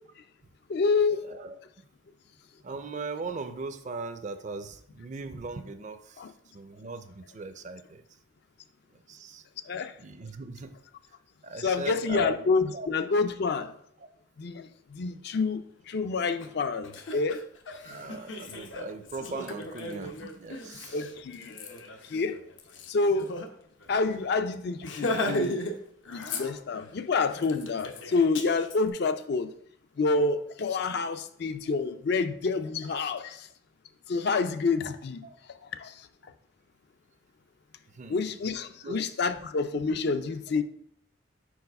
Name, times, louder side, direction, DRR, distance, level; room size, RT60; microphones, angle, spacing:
voice 1, 0.7-1.2 6.2-6.3 9.7-9.9 11.6-13.7 14.4-17.4 18.5-18.6 20.9-21.6 22.1-22.4 22.9-23.3 23.9-25.6 26.1-29.5 30.0-33.5 34.1-35.3 35.8-35.9 38.1-40.6, left 4 dB, 60° left, 9 dB, 0.5 m, -28 dB
voice 2, 1.2-1.6 2.6-6.2 6.5-8.0 9.1-9.4 10.0-10.8 11.4-12.5 12.7-12.9 14.0-14.1 17.1-17.2 17.8-21.0 35.2-35.3 38.0-38.4 38.8-39.1 39.4-39.5, right 3 dB, 40° right, 9 dB, 0.5 m, -39 dB
Laughter, 16.4-16.5 16.8-23.5 23.8-23.9 24.2-24.4 24.8-25.8 26.0-26.9 27.3-28.8, left 1 dB, 80° left, 0.8 m, -36 dB
4.7 x 4.1 x 5.2 m, 0.68 s
head